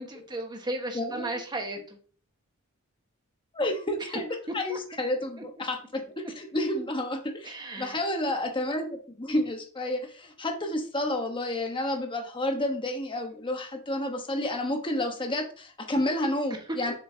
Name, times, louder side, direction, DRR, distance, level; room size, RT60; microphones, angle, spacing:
voice 1, 0.0-2.0 4.0-4.2 4.7-4.8 5.4-5.5 7.4-8.0 16.5-16.8, right 1 dB, 20° right, 3 dB, 1.4 m, -35 dB
voice 2, 0.9-1.3 3.5-4.2 4.5-8.9 9.1-16.9, left 1 dB, 20° left, 3 dB, 1.1 m, -30 dB
7.3 x 6.6 x 2.8 m, 0.42 s
head